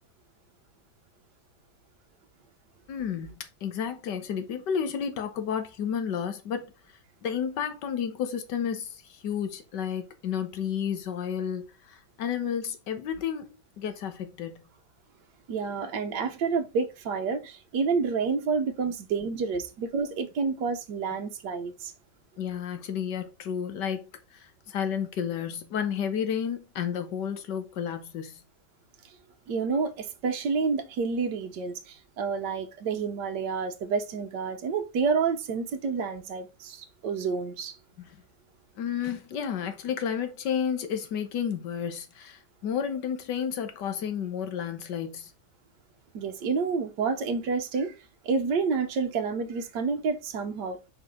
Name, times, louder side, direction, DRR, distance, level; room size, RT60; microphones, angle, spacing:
voice 1, 2.9-6.7 7.2-14.7 22.4-28.4 38.1-38.2 38.8-45.3, left 8 dB, 70° left, 1.8 m, -32 dB
voice 2, 15.5-21.9 29.5-37.8 46.1-47.9 48.2-50.9, right 5 dB, 70° right, 1.5 m, -29 dB
6.0 x 5.1 x 3.6 m
omnidirectional pair, 2.0 m